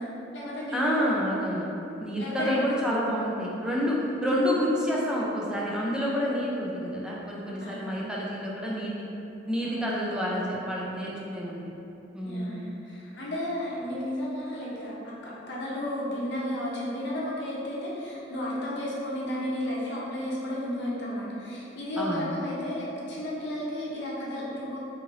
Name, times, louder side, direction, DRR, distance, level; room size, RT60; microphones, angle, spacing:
voice 1, 0.0-1.3 2.2-3.0 7.6-8.1 9.6-10.1 12.2-24.8, left 1 dB, 65° left, -6 dB, 0.7 m, -33 dB
voice 2, 0.7-1.7 2.0-9.0 9.5-11.6 12.1-12.6 22.0-22.3, equal, 5° right, -5 dB, 0.4 m, -28 dB
2.7 x 2.5 x 3.0 m, 2.8 s
head